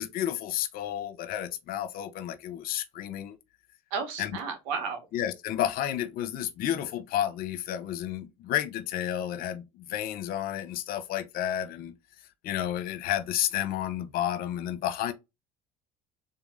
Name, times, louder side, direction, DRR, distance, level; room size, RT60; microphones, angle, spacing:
voice 1, 0.0-3.4 4.2-4.3 5.1-11.9 12.4-15.1, left 11 dB, 60° left, 0.8 m, -31 dB
voice 2, 3.9-5.0, right 5 dB, 90° right, 1.3 m, -32 dB
3.8 x 3.0 x 3.7 m
supercardioid pair, 95°, 17 cm